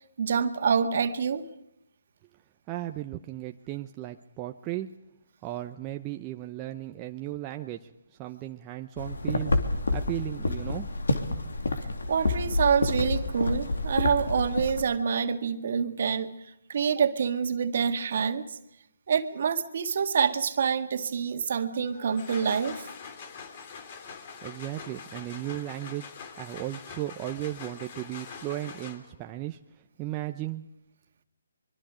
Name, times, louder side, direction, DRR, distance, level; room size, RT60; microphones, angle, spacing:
voice 1, 0.2-1.4 12.1-16.3 16.7-18.4 19.1-22.8, right 6 dB, 55° right, 7 dB, 1.9 m, -26 dB
voice 2, 2.7-4.9 5.4-7.9 8.2-9.6 9.9-10.9 24.4-26.0 26.4-29.6 30.0-30.7, right 15 dB, 20° right, 5 dB, 0.8 m, -35 dB
sound 1, 9.0-14.8, left 2 dB, 75° left, 3.0 m, -28 dB
sound 2, 21.9-29.3, left 6 dB, 40° left, 3.1 m, -44 dB
24.5 x 23.5 x 5.1 m, 0.82 s
figure-of-eight pair, 145°, 0 cm